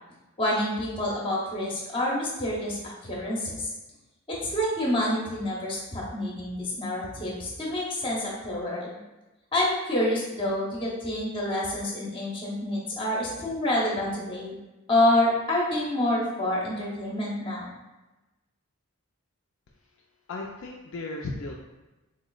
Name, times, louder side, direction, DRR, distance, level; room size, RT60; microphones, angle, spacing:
voice 1, 0.4-3.7 4.4-9.0 9.5-14.6 14.9-17.7, left 1 dB, 25° left, -4 dB, 0.7 m, -27 dB
voice 2, 20.3-21.5, left 2 dB, 60° left, -1 dB, 0.3 m, -35 dB
3.8 x 3.0 x 2.3 m, 1.1 s
head